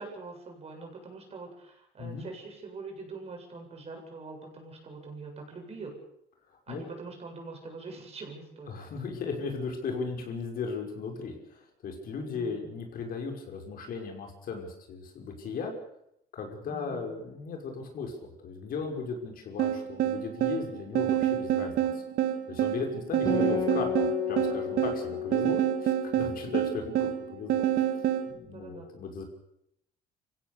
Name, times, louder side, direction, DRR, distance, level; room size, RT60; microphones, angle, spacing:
voice 1, 0.0-5.9 6.7-8.7 12.3-12.7 16.7-17.1 21.6-22.0 23.4-23.5 26.5-26.6 28.5-28.9, right 3 dB, 40° right, 2 dB, 7.6 m, -43 dB
voice 2, 6.5-6.8 8.7-15.7 16.3-22.0 22.5-28.0 28.3-29.2, left 4 dB, 60° left, 2 dB, 5.9 m, -37 dB
sound 1, 19.6-28.3, right 11 dB, 70° right, 2.3 m, -28 dB
Acoustic guitar, 23.3-27.0, left 8 dB, 20° left, 4.7 m, -33 dB
26.5 x 16.5 x 7.0 m, 0.76 s
cardioid pair, 110°, 17 cm